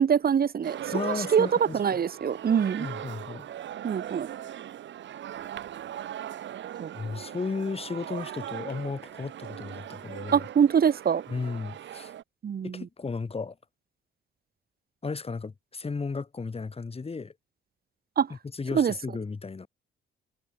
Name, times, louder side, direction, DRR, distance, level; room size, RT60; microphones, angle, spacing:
voice 1, 0.0-0.8 1.0-1.5 1.7-2.9 3.8-4.3 6.8-6.9 10.3-11.2 12.4-12.9 18.2-18.3 18.7-18.9, right 7 dB, 50° right, 2.5 m, -24 dB
sound 1, 0.6-12.2, right 11 dB, 70° right, 2.2 m, -39 dB
voice 2, 0.9-2.0 2.8-3.5 6.9-10.4 11.3-12.1 12.6-13.5 15.0-17.3 18.3-19.7, left 4 dB, 30° left, 5.8 m, -34 dB
cardioid pair, 90°, 20 cm